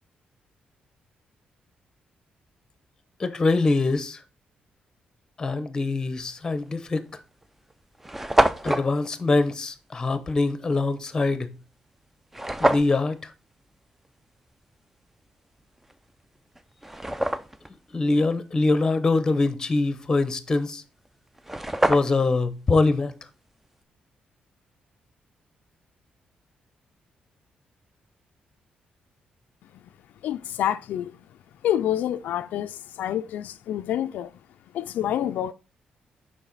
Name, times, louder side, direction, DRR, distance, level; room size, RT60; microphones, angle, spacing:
voice 1, 3.2-4.2 5.4-7.0 8.6-11.5 12.6-13.3 17.9-20.8 21.9-23.1, left 3 dB, 25° left, 0.7 m, -23 dB
sound 1, 6.5-6.7 7.4-7.5 7.7-7.8 8.0-8.9 12.3-13.0 15.9-16.0 16.5-17.7 21.0-21.1 21.4-22.4, right 1 dB, 10° right, 0.4 m, -25 dB
voice 2, 30.2-31.2 31.6-34.3 34.7-35.5, left 11 dB, 85° left, 0.3 m, -27 dB
7.1 x 5.0 x 3.9 m
cardioid pair, 145°, 3 cm